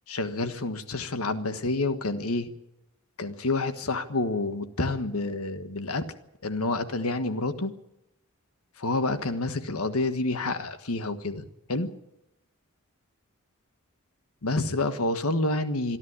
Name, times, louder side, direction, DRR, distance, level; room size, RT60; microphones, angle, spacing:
voice 1, 0.1-2.5 3.2-6.0 6.4-7.7 8.8-11.9 14.4-16.0, left 2 dB, 85° left, 10 dB, 1.5 m, -28 dB
26.5 x 11.0 x 9.7 m, 0.88 s
head